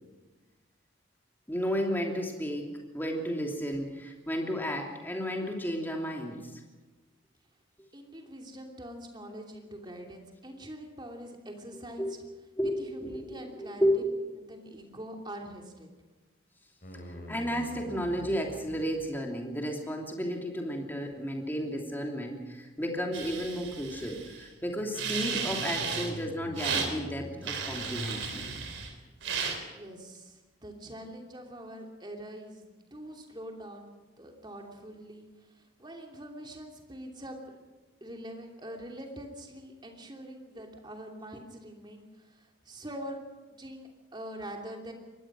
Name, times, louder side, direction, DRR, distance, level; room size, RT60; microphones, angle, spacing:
voice 1, 1.5-2.7 2.9-6.5 12.0-12.1 12.6-14.2 17.1-28.4, equal, 10° left, 1 dB, 3.0 m, -32 dB
voice 2, 7.9-12.2 12.8-13.9 14.5-15.9 29.7-37.6 38.0-44.9, right 1 dB, 25° right, 2 dB, 2.9 m, -44 dB
sound 1, 16.8-19.2 24.5-28.5, equal, 45° left, 4.0 m, -44 dB
sound 2, 23.1-24.4 25.0-26.1 26.6-26.9 27.4-28.9 29.2-29.6, right 6 dB, 85° right, 3.5 m, -34 dB
24.0 x 19.5 x 6.2 m, 1.3 s
head